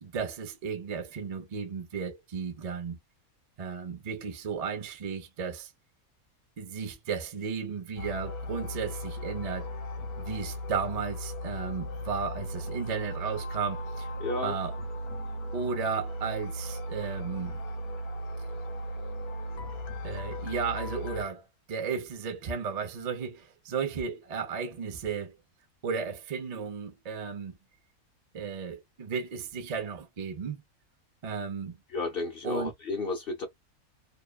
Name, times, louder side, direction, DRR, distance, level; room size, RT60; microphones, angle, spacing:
voice 1, 0.0-3.0 3.6-5.7 6.6-9.7 10.2-14.1 14.4-14.8 15.5-17.6 20.0-25.4 25.8-27.6 28.3-30.6 31.2-31.8 32.4-32.7, right 6 dB, 75° right, 0.3 m, -34 dB
sound 1, 8.0-21.2, equal, 80° left, 1.1 m, -37 dB
voice 2, 14.2-14.6 31.9-33.5, left 3 dB, 50° left, 0.8 m, -32 dB
2.8 x 2.1 x 2.2 m
omnidirectional pair, 1.5 m